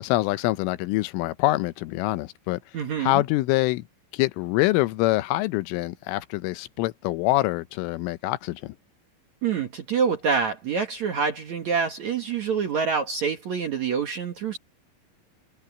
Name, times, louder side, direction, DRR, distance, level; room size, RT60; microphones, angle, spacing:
voice 1, 0.0-2.6 3.0-3.9 4.1-8.8, left 18 dB, 90° left, 3.4 m, -25 dB
voice 2, 2.7-3.2 9.4-14.6, right 6 dB, 65° right, 1.8 m, -26 dB
omnidirectional pair, 5.6 m